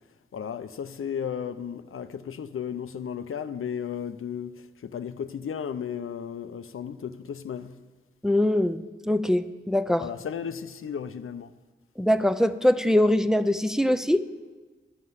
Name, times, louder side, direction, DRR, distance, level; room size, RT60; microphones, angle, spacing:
voice 1, 0.3-7.8 10.0-11.5, left 8 dB, 90° left, 0.5 m, -34 dB
voice 2, 8.2-8.8 9.1-10.1 12.0-14.2, left 1 dB, 5° right, 0.4 m, -22 dB
11.5 x 5.6 x 7.8 m
wide cardioid pair, 60°, 21 cm